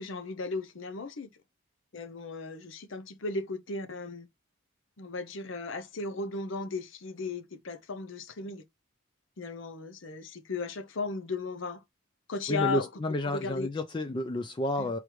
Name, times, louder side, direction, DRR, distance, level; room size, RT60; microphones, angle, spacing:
voice 1, 0.0-1.3 1.9-4.3 5.0-8.6 9.4-11.8 12.3-12.9 13.2-13.7 14.8-14.9, left 3 dB, 65° left, 0.7 m, -36 dB
voice 2, 12.5-15.0, left 1 dB, 20° left, 0.3 m, -31 dB
4.8 x 3.3 x 3.0 m
head